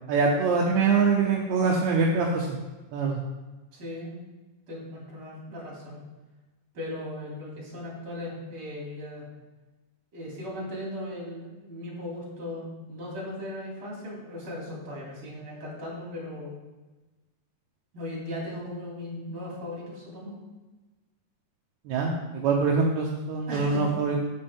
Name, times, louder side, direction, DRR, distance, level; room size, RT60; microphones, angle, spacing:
voice 1, 0.1-2.6 2.9-3.2 21.9-22.1 22.4-24.2, right 4 dB, 70° right, -1 dB, 1.8 m, -24 dB
voice 2, 3.7-4.2 4.7-6.0 6.7-9.3 10.1-16.6 17.9-20.4 23.5-23.8, left 1 dB, 40° right, -4 dB, 3.4 m, -37 dB
9.6 x 7.8 x 3.6 m, 1.2 s
omnidirectional pair, 3.9 m